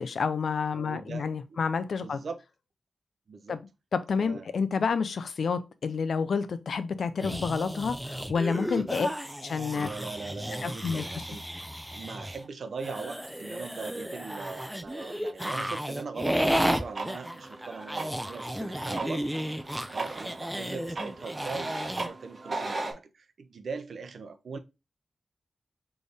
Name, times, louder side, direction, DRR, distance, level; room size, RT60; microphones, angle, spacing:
voice 1, 0.0-2.2 3.5-3.6 3.9-9.1 9.4-9.9 10.6-11.0, left 5 dB, 80° left, 0.5 m, -29 dB
voice 2, 0.7-1.3 2.0-2.4 3.3-3.6 4.2-4.4 8.8-9.1 9.7-11.6 11.9-19.2 19.9-24.6, right 4 dB, 80° right, 0.6 m, -40 dB
sound 1, 7.2-12.5 12.8-22.1, equal, 5° right, 0.5 m, -33 dB
sound 2, 16.4-22.9, right 2 dB, 45° right, 1.0 m, -38 dB
4.2 x 3.4 x 3.4 m
wide cardioid pair, 100°, 0 cm